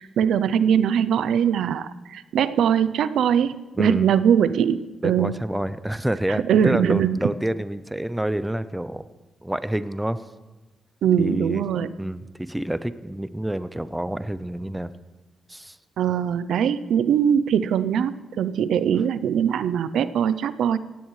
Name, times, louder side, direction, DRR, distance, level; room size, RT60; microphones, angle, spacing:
voice 1, 0.0-5.3 6.3-7.2 11.0-11.9 16.0-20.8, right 8 dB, 90° right, 15 dB, 0.5 m, -21 dB
voice 2, 3.8-4.1 5.0-9.0 9.4-10.2 11.2-11.6 12.0-14.9 15.5-15.8, right 1 dB, 5° right, 13 dB, 0.6 m, -28 dB
17.0 x 16.0 x 3.2 m, 1.1 s
cardioid pair, 100°, 0 cm